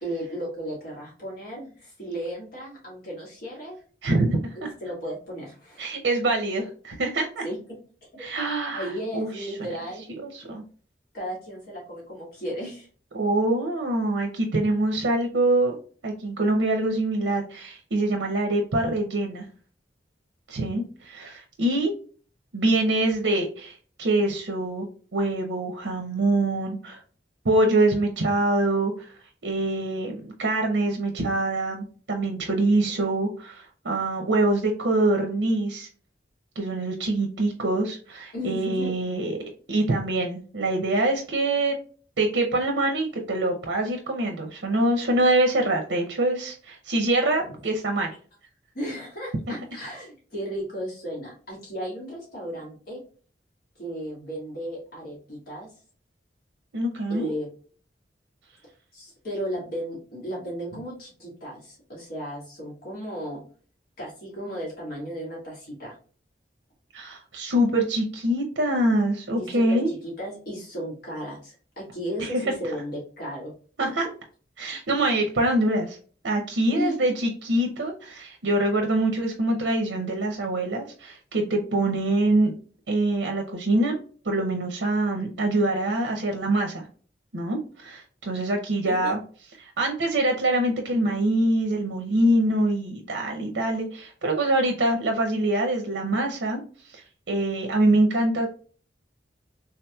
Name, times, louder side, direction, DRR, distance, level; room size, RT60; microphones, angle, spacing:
voice 1, 0.0-3.8 4.5-5.9 7.4-7.6 8.1-8.2 8.7-10.0 11.1-12.9 38.3-38.9 47.4-47.6 48.7-53.0 53.8-55.7 57.1-57.5 58.9-63.4 64.0-65.9 69.4-73.5 73.8-73.9 76.7-77.1 88.8-89.1, equal, 55° left, -4 dB, 1.7 m, -34 dB
voice 2, 4.0-4.7 5.8-7.4 8.2-9.5 10.2-10.6 13.1-15.7 16.0-19.5 20.5-21.9 22.5-24.9 25.1-27.0 27.4-29.2 29.4-35.9 36.6-39.4 39.7-41.7 42.2-48.1 49.5-49.6 56.7-57.3 66.9-69.9 72.2-72.5 73.8-74.1 74.6-76.0 76.2-82.5 82.9-84.0 84.2-86.9 87.3-89.2 89.6-98.5, right 1 dB, 80° right, 2 dB, 0.6 m, -24 dB
3.6 x 2.9 x 2.2 m, 0.42 s
head